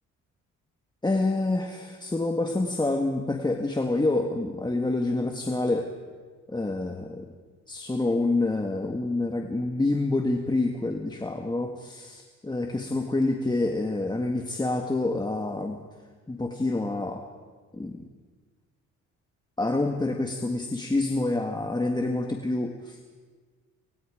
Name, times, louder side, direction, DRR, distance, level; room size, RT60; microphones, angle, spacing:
voice 1, 1.0-5.9 6.5-7.3 7.7-15.8 16.3-17.2 17.7-18.0 19.6-23.1, left 2 dB, 15° left, 3 dB, 1.8 m, -27 dB
27.0 x 25.5 x 5.1 m, 1.4 s
cardioid pair, 90°, 30 cm